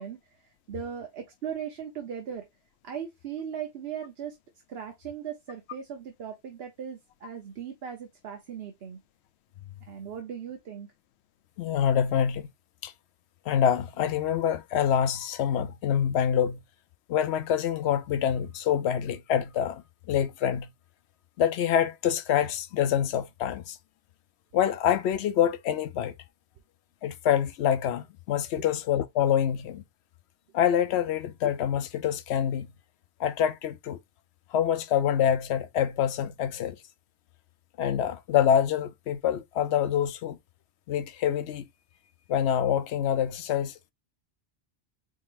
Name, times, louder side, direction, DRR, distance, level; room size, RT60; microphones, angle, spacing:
voice 1, 0.0-2.5 2.8-4.4 4.7-9.0 9.9-10.9 28.6-28.7, right 8 dB, 65° right, 1.0 m, -38 dB
voice 2, 11.6-12.5 12.8-12.9 13.5-16.6 17.1-19.8 20.1-20.7 21.4-23.8 24.5-26.1 27.0-29.8 30.5-32.7 33.2-34.0 34.5-36.8 37.8-40.4 40.9-41.6 42.3-43.9, left 9 dB, 80° left, 0.8 m, -26 dB
4.5 x 3.8 x 2.5 m
omnidirectional pair, 1.1 m